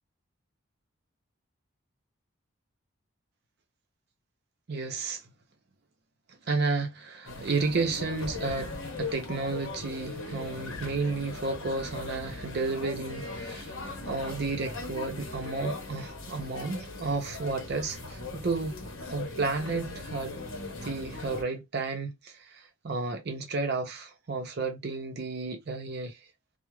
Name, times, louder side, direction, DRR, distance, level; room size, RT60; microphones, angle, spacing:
voice 1, 4.7-5.2 6.5-8.7 9.0-13.7 14.0-18.8 19.1-20.3 20.8-26.2, right 3 dB, 50° right, 0.6 m, -32 dB
sound 1, 7.3-21.4, left 3 dB, 65° left, 0.8 m, -39 dB
2.3 x 2.0 x 3.0 m
head